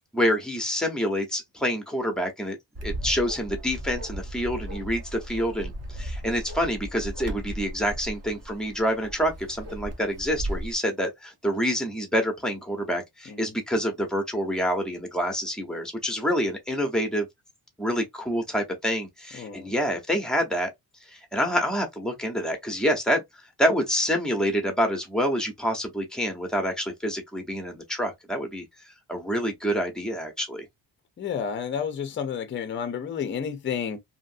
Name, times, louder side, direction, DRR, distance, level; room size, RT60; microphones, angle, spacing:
voice 1, 0.1-2.6 2.8-17.3 17.8-20.7 21.1-23.2 23.6-28.6 29.1-30.6, equal, ahead, 0.8 m, -27 dB
Bark, 2.8-10.7, equal, 40° right, 0.8 m, -36 dB
voice 2, 19.3-19.7 31.2-34.0, left 7 dB, 30° left, 0.5 m, -31 dB
2.8 x 2.5 x 2.5 m
cardioid pair, 140°, 39 cm